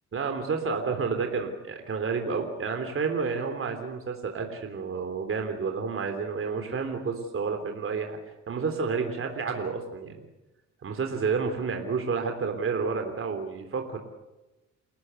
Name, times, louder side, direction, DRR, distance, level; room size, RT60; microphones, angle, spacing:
voice 1, 0.1-8.2 8.5-10.2 10.8-14.0, right 5 dB, 45° right, 5 dB, 3.5 m, -30 dB
29.0 x 14.0 x 8.2 m, 1.0 s
cardioid pair, 90°, 30 cm